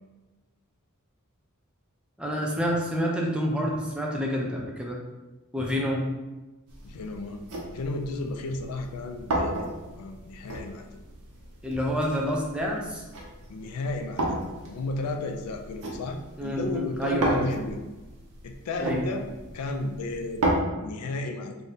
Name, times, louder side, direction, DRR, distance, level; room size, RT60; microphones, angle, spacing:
voice 1, 2.2-5.0 5.5-6.1 11.6-13.0 16.4-17.5 18.8-19.0, equal, 5° right, -2 dB, 0.4 m, -28 dB
sound 1, 6.7-20.5, right 1 dB, 80° right, 0.6 m, -34 dB
voice 2, 6.8-7.4 7.7-9.7 9.9-10.9 13.5-17.8 18.4-19.3 19.5-20.4 20.8-21.6, left 2 dB, 80° left, 5 dB, 0.4 m, -33 dB
2.7 x 2.1 x 3.6 m, 1.1 s
head